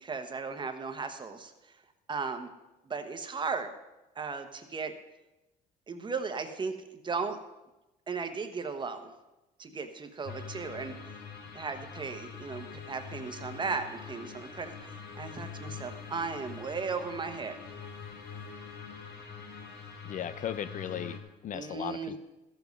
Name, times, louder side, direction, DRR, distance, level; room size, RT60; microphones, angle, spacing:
voice 1, 0.0-1.5 2.1-2.5 2.9-3.7 4.2-4.9 5.9-6.8 7.0-7.4 8.1-9.1 9.6-10.9 11.5-17.6 21.5-22.2, right 4 dB, 30° right, 7 dB, 1.2 m, -36 dB
sound 1, 10.2-21.2, left 5 dB, 80° left, 1.7 m, -44 dB
voice 2, 20.0-22.2, left 9 dB, 50° left, 14 dB, 0.5 m, -37 dB
14.0 x 7.2 x 5.4 m, 1.0 s
cardioid pair, 110°, 17 cm